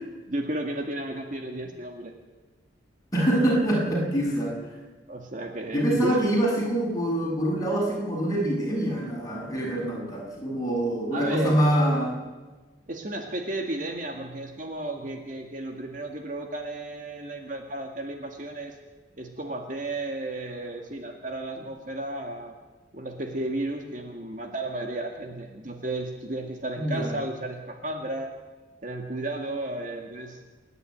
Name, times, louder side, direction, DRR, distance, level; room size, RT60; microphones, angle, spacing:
voice 1, 0.3-2.1 5.1-6.3 11.1-11.6 12.9-18.8 19.2-22.6 22.9-28.3 28.8-30.4, right 1 dB, 40° right, 3 dB, 2.0 m, -33 dB
voice 2, 3.1-4.5 5.7-12.2 26.8-27.1, right 1 dB, 20° left, -3 dB, 7.0 m, -25 dB
28.0 x 11.0 x 9.4 m, 1.2 s
head